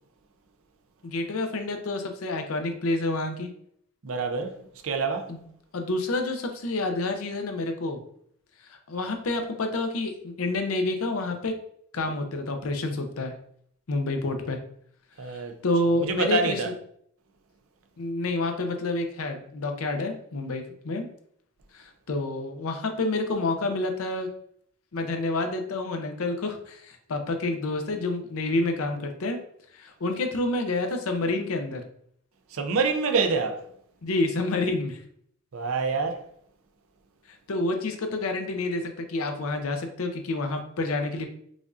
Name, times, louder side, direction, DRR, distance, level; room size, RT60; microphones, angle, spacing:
voice 1, 1.0-3.5 5.3-5.4 5.7-8.0 8.6-11.5 11.9-13.3 13.9-14.6 15.3-16.6 18.0-21.1 21.7-24.3 24.9-29.4 29.7-31.8 34.0-35.0 37.5-41.3, left 2 dB, 70° left, 0.6 m, -28 dB
voice 2, 4.0-4.5 4.8-5.3 15.2-15.5 16.0-16.7 32.5-33.6 35.5-36.2, right 4 dB, 65° right, 0.5 m, -26 dB
5.0 x 2.4 x 2.5 m
head